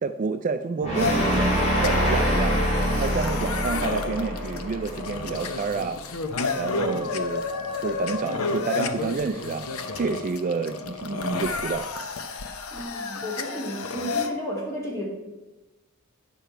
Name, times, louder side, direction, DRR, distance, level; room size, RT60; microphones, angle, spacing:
voice 1, 0.0-2.7 3.0-6.0 6.6-7.4 7.8-9.7 9.9-11.9, right 4 dB, 35° right, 8 dB, 0.3 m, -29 dB
sound 1, 0.8-5.9, equal, 30° left, 2.9 m, -25 dB
sound 2, 1.0-14.3, left 4 dB, 70° left, 0.8 m, -31 dB
voice 2, 12.7-15.1, equal, 15° left, -3 dB, 2.2 m, -33 dB
10.0 x 6.8 x 4.5 m, 1.1 s
head